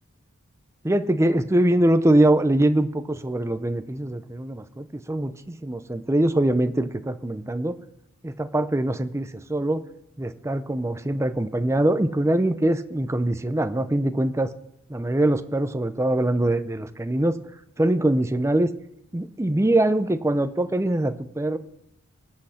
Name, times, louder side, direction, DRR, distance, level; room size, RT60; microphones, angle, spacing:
voice 1, 0.8-7.7 8.2-9.8 10.2-14.5 14.9-17.3 17.8-18.7 19.1-21.6, right 1 dB, 15° right, 11 dB, 0.6 m, -23 dB
20.5 x 7.8 x 4.3 m, 0.81 s
head